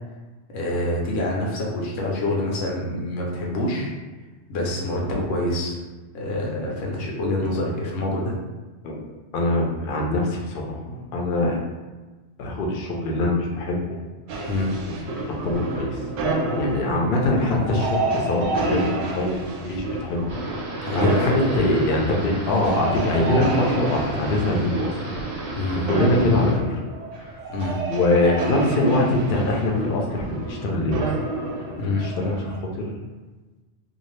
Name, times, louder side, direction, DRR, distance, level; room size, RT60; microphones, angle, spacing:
voice 1, 0.5-3.9 4.5-5.8 6.1-8.3 14.5-14.8 20.8-21.3 25.5-25.9 27.5-27.8 31.8-32.1, left 1 dB, 90° left, -2 dB, 1.0 m, -26 dB
voice 2, 9.3-11.6 12.4-13.8 14.8-16.0 16.6-20.2 20.9-25.1 25.8-26.8 27.2-27.3 27.9-31.1 32.0-32.9, left 2 dB, 60° left, 0 dB, 0.6 m, -23 dB
sound 1, 14.3-32.6, right 2 dB, 80° right, 0.9 m, -29 dB
sound 2, 20.3-26.5, right 2 dB, 50° right, 0.6 m, -35 dB
2.6 x 2.4 x 3.1 m, 1.2 s
omnidirectional pair, 1.2 m